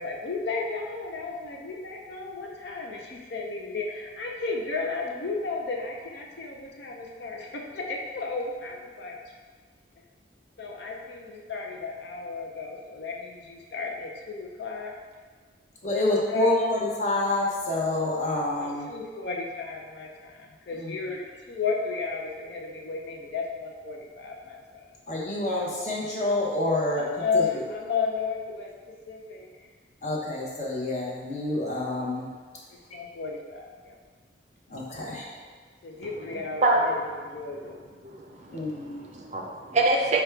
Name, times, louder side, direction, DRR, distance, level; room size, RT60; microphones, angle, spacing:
voice 1, 0.0-9.2 10.6-14.9 15.9-16.7 18.6-24.8 26.9-29.7 32.9-33.9 35.8-37.8, left 4 dB, 60° left, 0 dB, 0.5 m, -33 dB
voice 2, 15.8-18.9 20.7-20.9 25.1-27.0 30.0-32.3 34.7-35.3 38.5-39.0, left 1 dB, 35° left, -4 dB, 0.8 m, -27 dB
voice 3, 38.0-40.2, right 2 dB, 35° right, 0 dB, 0.4 m, -25 dB
5.1 x 2.3 x 4.5 m, 1.5 s
head